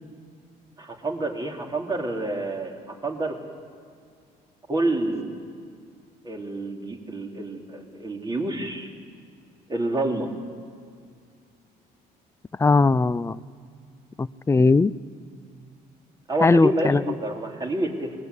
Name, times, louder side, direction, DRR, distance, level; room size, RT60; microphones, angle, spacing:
voice 1, 0.8-3.4 4.7-5.4 6.2-8.9 9.7-10.3 16.3-18.1, right 2 dB, 25° right, 1 dB, 3.5 m, -28 dB
voice 2, 12.6-13.4 14.2-14.9 16.4-17.0, left 3 dB, 15° left, 17 dB, 0.5 m, -19 dB
26.0 x 20.5 x 8.3 m, 2.2 s
cardioid pair, 110°, 17 cm